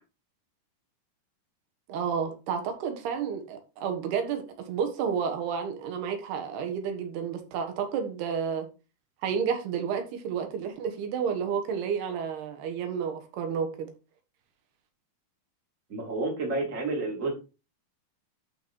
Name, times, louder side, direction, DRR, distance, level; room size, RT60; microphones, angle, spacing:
voice 1, 1.9-4.4 4.7-8.7 9.2-13.9, right 7 dB, 85° right, 3.5 m, -31 dB
voice 2, 15.9-17.3, right 3 dB, 20° right, 3.0 m, -30 dB
11.5 x 5.2 x 4.6 m
omnidirectional pair, 4.5 m